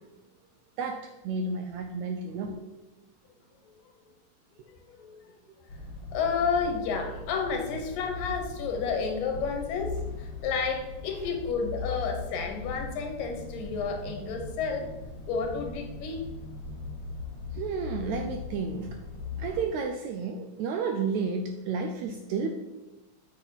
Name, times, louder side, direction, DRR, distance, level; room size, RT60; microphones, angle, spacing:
voice 1, 0.8-2.6 17.5-19.0 19.4-22.5, right 4 dB, 80° right, 5 dB, 1.6 m, -31 dB
sound 1, 5.7-19.6, left 4 dB, 60° left, 3.9 m, -39 dB
voice 2, 6.1-14.9 15.3-16.2, left 5 dB, 85° left, 4 dB, 2.9 m, -31 dB
8.2 x 7.1 x 4.0 m, 1.1 s
omnidirectional pair, 3.8 m